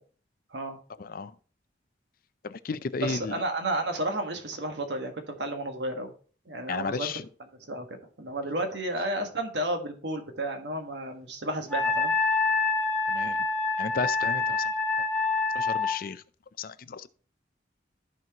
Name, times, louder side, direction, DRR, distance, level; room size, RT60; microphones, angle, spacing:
voice 1, 1.0-1.3 2.4-3.3 6.7-7.2 13.1-13.4 13.8-14.7 15.5-16.2 16.6-17.1, left 5 dB, 50° left, 0.5 m, -33 dB
voice 2, 3.0-6.1 6.5-7.1 7.7-12.1, right 1 dB, 65° right, 1.5 m, -32 dB
Wind instrument woodwind instrument, 11.7-16.0, left 3 dB, 5° left, 1.4 m, -26 dB
13.5 x 4.5 x 2.9 m
head